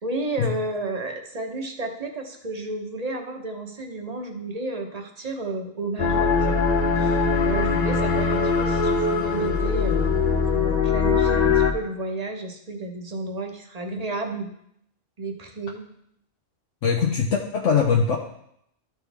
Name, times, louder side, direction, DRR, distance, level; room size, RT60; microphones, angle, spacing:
voice 1, 0.0-6.6 6.9-10.2 10.5-14.5 15.2-15.8, right 2 dB, 35° right, 3 dB, 1.0 m, -32 dB
sound 1, 6.0-11.7, left 5 dB, 40° left, 0.7 m, -21 dB
voice 2, 16.8-18.2, left 6 dB, 80° left, -1 dB, 1.1 m, -21 dB
13.0 x 4.6 x 3.4 m, 0.74 s
omnidirectional pair, 1.3 m